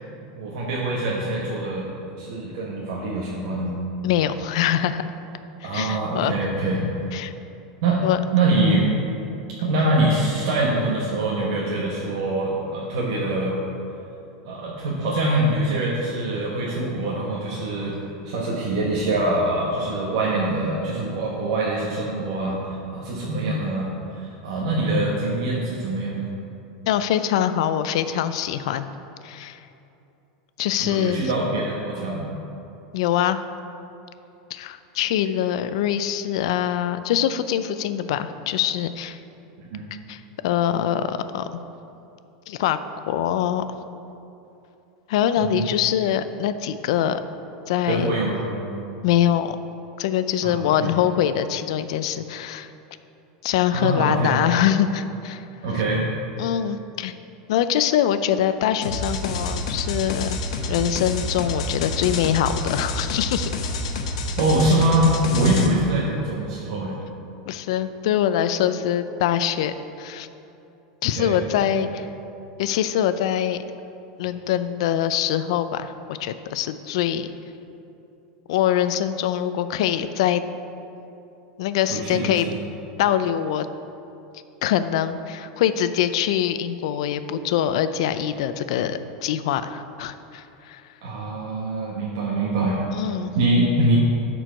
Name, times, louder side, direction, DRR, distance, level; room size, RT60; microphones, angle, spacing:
voice 1, 0.3-1.9 2.2-3.7 5.6-6.8 7.8-8.0 8.3-9.1 9.6-13.6 14.4-18.0 18.2-26.3 30.8-32.3 39.7-39.9 45.4-45.7 47.9-48.6 50.4-50.9 53.7-54.4 55.6-56.1 64.4-67.0 71.1-71.4 71.7-71.9 81.9-82.6 91.0-92.8 93.3-94.0, right 2 dB, 55° right, -4 dB, 1.2 m, -24 dB
voice 2, 4.0-5.0 5.6-6.3 7.1-7.3 8.0-8.2 26.9-28.9 29.2-29.6 30.6-31.2 32.9-33.4 34.5-39.2 40.1-41.5 42.5-42.8 43.1-43.6 45.1-47.2 47.7-48.2 49.0-49.6 50.0-52.7 53.4-55.4 56.4-57.1 57.5-60.4 60.7-63.5 67.5-70.3 71.0-72.1 72.6-73.6 74.2-77.3 78.5-80.4 81.6-82.5 83.0-83.7 84.6-90.8 92.9-93.3, left 10 dB, 60° left, 11 dB, 0.4 m, -23 dB
sound 1, 58.8-65.7, left 2 dB, 85° left, 0.9 m, -28 dB
12.0 x 4.6 x 5.2 m, 2.8 s
supercardioid pair, 175°, 3 cm